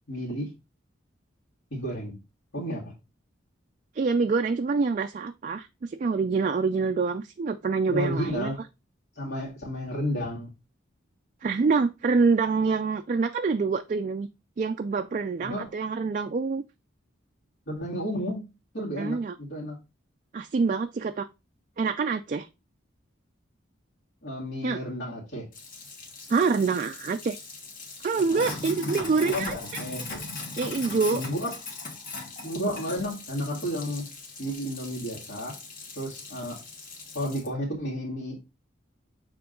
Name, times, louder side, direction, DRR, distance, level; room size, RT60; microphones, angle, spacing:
voice 1, 0.1-0.5 1.7-2.2 2.5-2.8 7.9-8.6 9.1-10.5 15.4-15.7 17.7-18.5 18.7-19.8 24.2-25.5 28.1-30.0 31.1-31.6 32.4-34.1 34.4-35.6 36.0-36.6 37.1-38.4, equal, 65° left, 2.2 m, -32 dB
voice 2, 3.9-8.5 11.4-14.3 14.6-16.6 19.0-19.4 20.3-21.3 21.8-22.5 24.6-24.8 26.3-27.4 28.0-29.8 30.6-31.2, right 4 dB, 40° right, 0.3 m, -26 dB
Sink (filling or washing), 25.5-37.5, left 3 dB, 45° left, 1.4 m, -40 dB
6.9 x 3.7 x 3.8 m
head